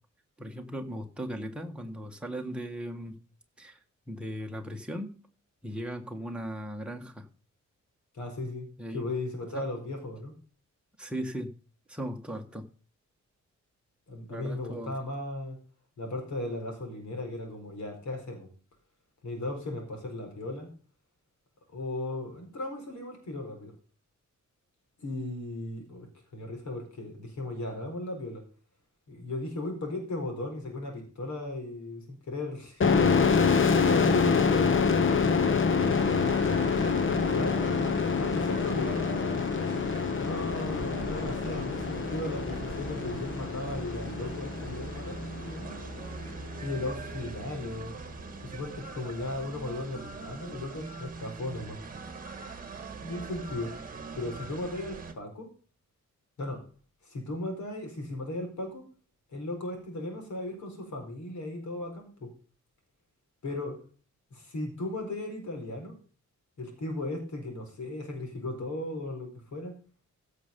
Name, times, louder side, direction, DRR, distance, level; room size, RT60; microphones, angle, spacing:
voice 1, 0.4-3.2 3.6-3.8 4.1-5.2 5.6-7.3 8.8-9.1 9.5-9.7 11.0-11.5 11.9-12.7 14.3-15.1 37.0-37.1, equal, 5° right, 2 dB, 1.5 m, -37 dB
voice 2, 8.1-8.7 8.9-10.3 14.1-15.6 16.0-18.5 19.2-20.7 21.7-23.7 25.0-28.4 29.1-36.1 37.3-37.6 38.2-39.1 39.8-45.9 46.6-47.9 48.4-51.8 52.7-53.7 54.1-55.5 56.4-56.6 57.0-58.8 59.3-62.3 63.4-63.8 64.3-66.0 66.6-69.8, left 2 dB, 70° left, 3 dB, 4.6 m, -36 dB
sound 1, 32.8-46.2, left 5 dB, 45° left, 0.9 m, -26 dB
sound 2, 35.8-55.1, right 4 dB, 30° right, 1.6 m, -41 dB
16.0 x 6.7 x 5.3 m, 0.39 s
wide cardioid pair, 180°, 30 cm